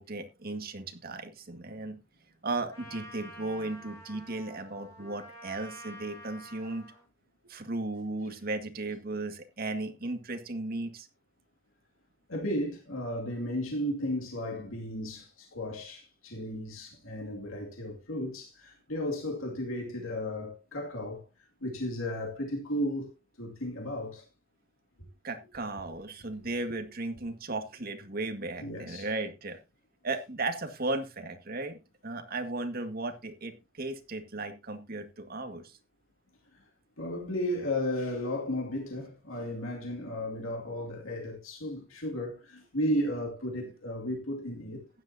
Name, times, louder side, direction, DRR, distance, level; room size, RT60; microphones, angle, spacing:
voice 1, 0.0-2.0 2.4-6.8 7.5-11.1 25.2-29.6 30.0-31.8 32.0-35.8, right 2 dB, 50° right, 2.0 m, -35 dB
Trumpet, 2.7-7.0, equal, 15° left, 7.7 m, -49 dB
voice 2, 12.3-21.2 21.6-23.1 23.4-24.3 28.6-29.1 36.5-36.6 37.0-44.9, left 1 dB, 90° left, 2.5 m, -34 dB
15.0 x 10.5 x 2.8 m
head